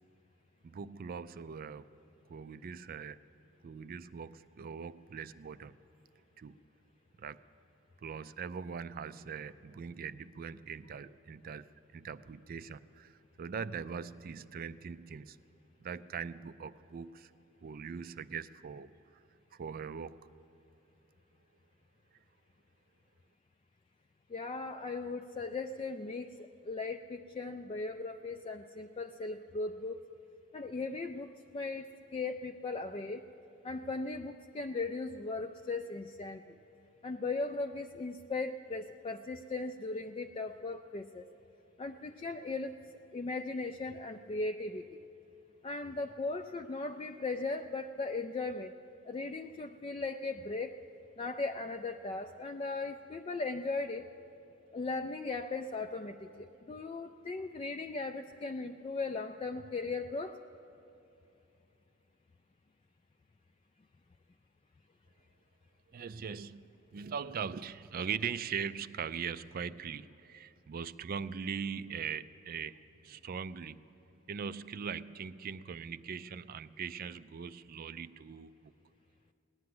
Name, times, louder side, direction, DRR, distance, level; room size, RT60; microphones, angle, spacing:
voice 1, 0.6-1.8 2.3-3.2 3.6-5.7 6.4-6.6 7.2-7.4 8.0-11.7 11.9-15.4 15.8-17.3 17.6-18.9 19.5-20.2 65.9-73.8 74.3-78.7, right 6 dB, 45° right, 15 dB, 0.4 m, -41 dB
voice 2, 24.3-30.0 30.5-33.2 33.6-36.6 37.0-41.2 41.8-42.8 43.1-45.0 45.6-48.7 49.0-50.8 51.2-54.0 54.7-60.4, left 3 dB, 25° left, 5 dB, 0.3 m, -38 dB
17.5 x 10.5 x 7.8 m, 2.8 s
head